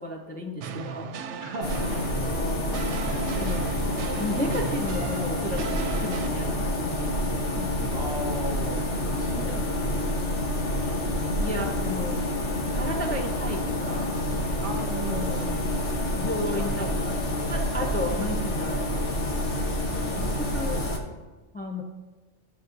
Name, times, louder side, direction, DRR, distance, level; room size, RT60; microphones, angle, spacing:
voice 1, 0.0-1.4 1.8-2.8 3.4-7.2 7.5-7.9 9.4-9.6 11.4-12.2 12.7-14.2 15.1-15.7 16.1-17.2 17.5-18.9 20.1-20.8 21.5-21.8, left 1 dB, 10° left, 0 dB, 0.6 m, -34 dB
sound 1, 0.6-6.3, right 6 dB, 80° right, 0.9 m, -36 dB
voice 2, 1.4-2.2 3.0-3.3 7.9-9.8 14.6-16.0 16.4-16.8, right 2 dB, 45° right, 0 dB, 1.3 m, -37 dB
sound 2, 1.6-21.0, left 1 dB, 85° left, 1.5 m, -28 dB
13.0 x 6.6 x 2.6 m, 1.2 s
omnidirectional pair, 1.2 m